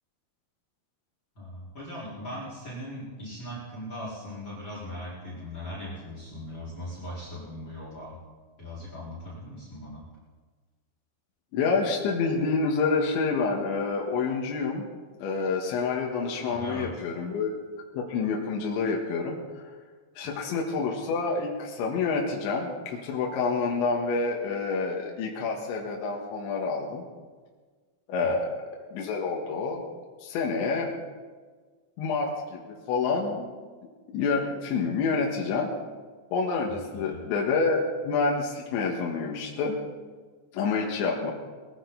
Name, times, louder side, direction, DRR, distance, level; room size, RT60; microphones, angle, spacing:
voice 1, 1.3-8.2 8.6-10.0 16.3-17.0 28.2-28.3 36.7-37.2, left 1 dB, 25° left, -6 dB, 4.7 m, -39 dB
voice 2, 11.5-14.9 15.2-17.5 17.9-19.7 20.2-27.0 28.1-28.5 28.9-29.9 30.2-30.9 32.0-33.5 34.1-35.7 36.3-39.8 40.5-41.3, left 4 dB, 70° left, -1 dB, 3.8 m, -28 dB
21.5 x 14.5 x 4.1 m, 1.4 s
omnidirectional pair, 5.6 m